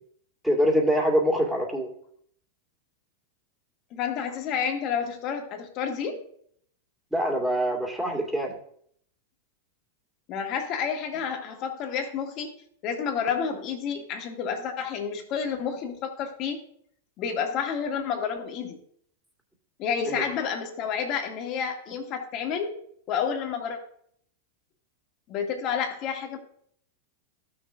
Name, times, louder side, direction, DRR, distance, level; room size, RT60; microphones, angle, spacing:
voice 1, 0.4-1.9 7.1-8.5 20.1-20.2, equal, 5° right, 0 dB, 2.1 m, -24 dB
voice 2, 3.9-6.2 10.3-12.5 12.8-16.6 17.2-18.8 19.8-22.8 23.1-23.8 25.3-26.4, left 7 dB, 45° left, 3 dB, 1.8 m, -30 dB
14.5 x 6.4 x 2.6 m, 0.65 s
hypercardioid pair, 105°, 0 cm